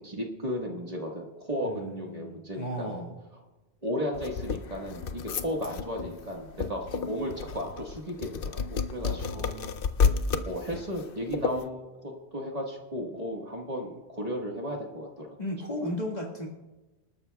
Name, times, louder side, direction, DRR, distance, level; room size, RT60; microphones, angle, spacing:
voice 1, 0.0-3.0 3.8-9.5 10.5-15.4, equal, 35° right, 0 dB, 1.7 m, -35 dB
voice 2, 1.6-3.1 9.2-10.0 15.4-16.5, equal, 40° left, -1 dB, 2.0 m, -36 dB
sound 1, 4.1-11.7, left 5 dB, 60° left, 0.8 m, -31 dB
26.5 x 12.5 x 2.3 m, 1.2 s
omnidirectional pair, 1.1 m